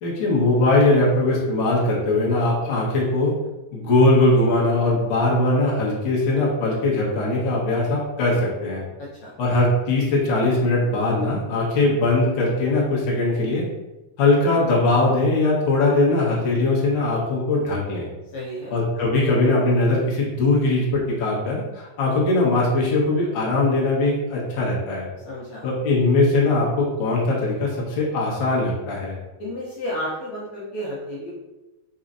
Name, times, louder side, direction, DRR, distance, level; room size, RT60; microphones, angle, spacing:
voice 1, 0.0-3.3 3.7-8.8 9.4-13.6 14.2-18.1 18.7-25.1 25.6-29.1, left 2 dB, 55° left, -6 dB, 1.3 m, -20 dB
voice 2, 9.0-9.4 18.3-18.7 25.3-25.7 29.4-31.3, equal, 70° left, -6 dB, 1.9 m, -32 dB
4.9 x 4.2 x 2.6 m, 1.0 s
omnidirectional pair, 3.9 m